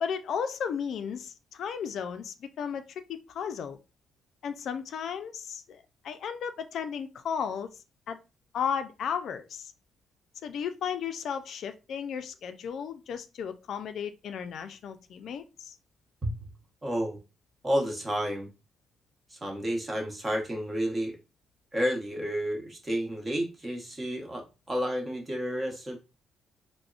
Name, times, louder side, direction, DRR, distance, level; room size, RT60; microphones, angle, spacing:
voice 1, 0.0-2.8 3.3-3.8 4.4-7.7 8.1-8.2 8.5-9.7 10.4-15.7, left 7 dB, 70° left, 9 dB, 0.3 m, -34 dB
voice 2, 16.8-17.2 17.6-18.5 19.3-21.2 21.7-26.0, equal, 25° right, 1 dB, 0.9 m, -31 dB
3.5 x 2.0 x 2.4 m, 0.29 s
cardioid pair, 90°, 0 cm